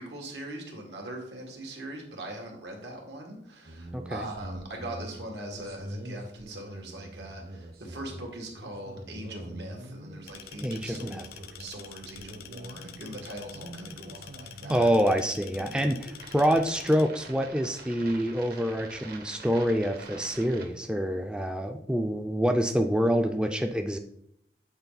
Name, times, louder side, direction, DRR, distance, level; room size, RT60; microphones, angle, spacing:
voice 1, 0.0-14.9, right 1 dB, 80° right, 1 dB, 1.8 m, -41 dB
sound 1, 3.7-20.7, right 1 dB, 60° right, 1.2 m, -44 dB
voice 2, 3.9-4.3 10.6-11.3 14.7-24.0, equal, 5° right, 5 dB, 0.3 m, -26 dB
sound 2, 10.3-17.0, left 9 dB, 60° left, 0.5 m, -47 dB
8.1 x 4.2 x 4.0 m, 0.74 s
head